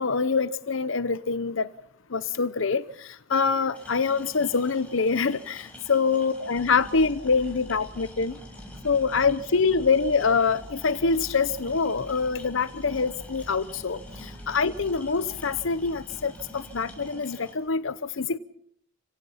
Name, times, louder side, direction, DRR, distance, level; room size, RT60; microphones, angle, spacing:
voice 1, 0.0-1.7 2.1-8.3 8.8-18.4, left 5 dB, 70° left, 14 dB, 0.8 m, -25 dB
sound 1, 3.7-17.6, left 1 dB, 5° left, 6.5 m, -48 dB
sound 2, 6.5-17.1, equal, 20° right, 4.5 m, -46 dB
29.5 x 17.5 x 5.7 m, 0.66 s
head